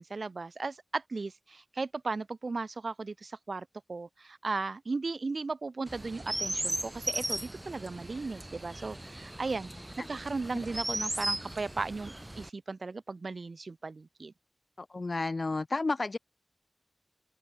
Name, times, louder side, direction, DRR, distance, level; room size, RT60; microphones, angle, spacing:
voice 1, 0.0-14.3, right 3 dB, 65° right, 0.5 m, -36 dB
Chirp tweet, 5.9-12.5, right 1 dB, 20° right, 0.7 m, -37 dB
voice 2, 14.8-16.2, left 3 dB, 55° left, 0.4 m, -31 dB
open air
wide cardioid pair, 80°, 0 cm